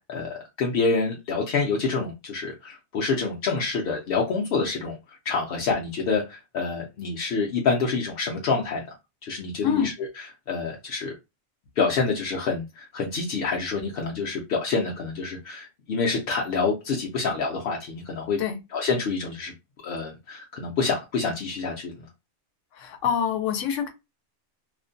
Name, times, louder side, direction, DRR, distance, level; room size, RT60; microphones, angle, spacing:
voice 1, 0.1-5.0 5.3-8.8 9.2-9.9 10.5-11.1 11.8-18.4 18.7-19.5 19.8-21.9, left 4 dB, 60° left, 0.7 m, -27 dB
voice 2, 22.7-23.9, left 8 dB, 90° left, 1.0 m, -25 dB
2.4 x 2.1 x 2.5 m
omnidirectional pair, 1.2 m